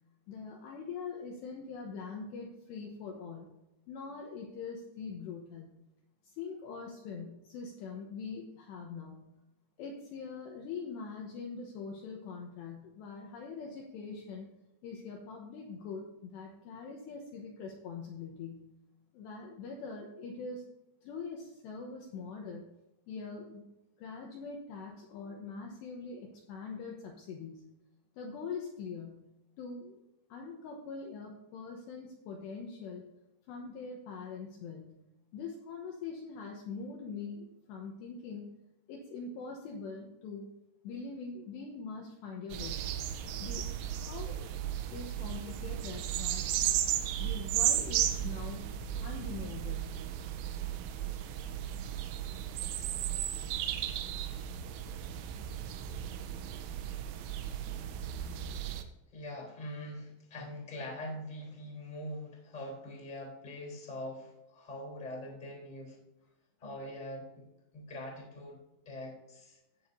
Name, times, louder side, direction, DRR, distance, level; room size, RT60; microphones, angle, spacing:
voice 1, 0.3-3.5 3.9-5.7 6.2-9.3 9.8-14.5 14.8-18.7 19.1-20.7 21.0-22.7 23.1-23.6 24.0-27.7 28.2-29.3 29.6-30.0 30.3-33.0 33.5-35.0 35.3-38.5 38.9-40.5 40.8-42.9 43.4-43.7 43.9-44.5 44.9-46.4 47.2-48.7 49.0-50.0, left 5 dB, 75° left, 0 dB, 2.8 m, -43 dB
sound 1, 42.5-58.8, right 11 dB, 90° right, 3.3 m, -35 dB
voice 2, 58.1-58.4 59.1-66.0 66.6-67.4 67.7-68.6 68.8-69.6, left 1 dB, 10° left, 0 dB, 2.8 m, -43 dB
16.5 x 7.8 x 2.7 m, 0.95 s
omnidirectional pair, 5.9 m